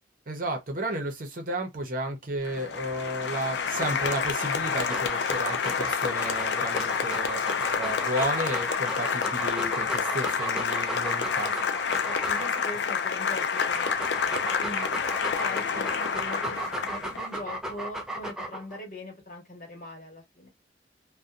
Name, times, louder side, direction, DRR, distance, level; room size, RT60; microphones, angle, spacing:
voice 1, 0.3-11.6, right 1 dB, 50° right, 0.7 m, -33 dB
Applause, 2.4-17.3, left 6 dB, 75° left, 0.4 m, -29 dB
Dog, 4.6-12.8 13.4-18.8, right 1 dB, 5° right, 0.4 m, -36 dB
voice 2, 12.0-14.9 15.4-20.5, left 1 dB, 45° left, 1.2 m, -41 dB
2.7 x 2.2 x 2.4 m
head